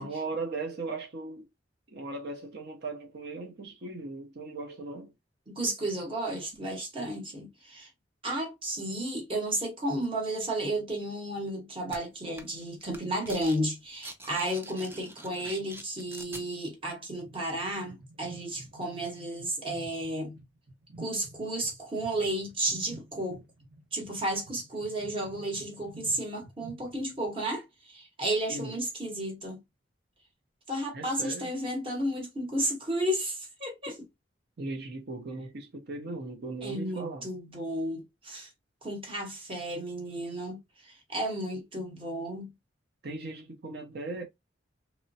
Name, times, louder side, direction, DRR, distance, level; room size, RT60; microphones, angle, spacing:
voice 1, 0.0-1.5 1.9-5.1 28.5-28.8 30.9-31.5 34.6-37.3 43.0-44.2, right 3 dB, 60° right, 0.6 m, -38 dB
voice 2, 5.5-7.9 8.2-20.4 21.0-23.4 23.9-29.6 30.7-34.1 36.6-38.5 38.8-40.6 40.9-42.5, right 1 dB, 30° right, 1.0 m, -33 dB
sound 1, 11.9-12.0 12.4-12.6 12.9-13.6 13.9-16.5, right 2 dB, 10° right, 0.3 m, -45 dB
sound 2, 17.2-27.3, right 1 dB, 90° right, 0.9 m, -51 dB
3.0 x 2.1 x 2.6 m
head